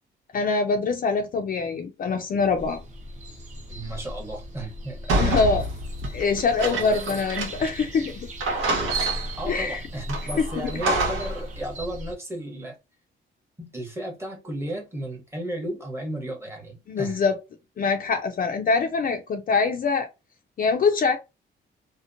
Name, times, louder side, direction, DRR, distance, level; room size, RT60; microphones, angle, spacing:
voice 1, 0.3-2.8 5.2-5.6 6.1-8.3 9.5-9.8 10.3-10.7 16.9-17.4 17.8-20.1 20.6-21.2, left 4 dB, 45° left, 0.5 m, -24 dB
sound 1, 2.6-12.1, equal, 35° right, 0.8 m, -38 dB
voice 2, 3.7-5.4 6.6-7.2 9.4-12.8 13.6-17.2, right 1 dB, 10° right, 1.0 m, -34 dB
sound 2, 5.1-8.1 8.4-9.5 10.1-11.4, right 2 dB, 80° right, 1.0 m, -27 dB
2.8 x 2.1 x 2.5 m
cardioid pair, 125°, 20 cm